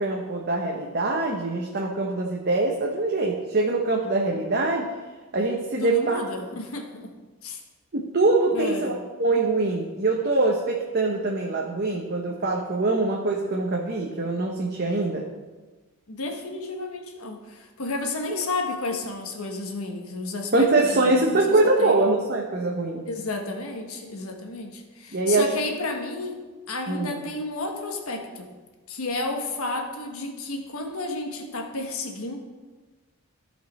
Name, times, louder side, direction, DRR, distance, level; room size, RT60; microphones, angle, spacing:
voice 1, 0.0-4.9 5.3-6.2 7.9-8.9 9.2-15.3 18.3-18.4 20.5-23.1 25.1-25.5 26.9-27.2, right 2 dB, 45° right, 0 dB, 0.9 m, -23 dB
voice 2, 5.8-7.1 7.4-7.6 8.5-9.0 16.1-21.4 21.8-22.0 23.1-26.4 26.7-28.5 28.9-32.4, left 2 dB, 75° left, 3 dB, 1.4 m, -32 dB
14.5 x 5.3 x 4.2 m, 1.3 s
head